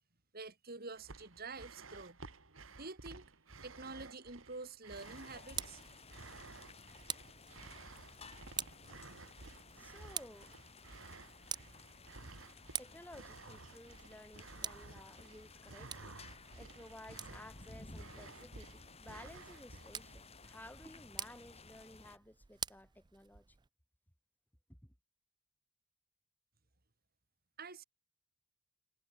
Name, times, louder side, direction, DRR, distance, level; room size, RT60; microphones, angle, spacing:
voice 1, 0.3-2.2 2.8-3.2 3.6-5.8 27.6-27.8, right 3 dB, 45° right, 2.9 m, -47 dB
sound 1, 0.9-20.2, right 3 dB, 70° right, 2.2 m, -54 dB
sound 2, 4.9-22.2, left 3 dB, 30° left, 2.2 m, -56 dB
Tick, 5.2-23.7, right 8 dB, 20° right, 0.4 m, -49 dB
voice 2, 9.7-10.5 12.5-23.4 24.7-24.9, left 1 dB, 10° left, 4.9 m, -56 dB
head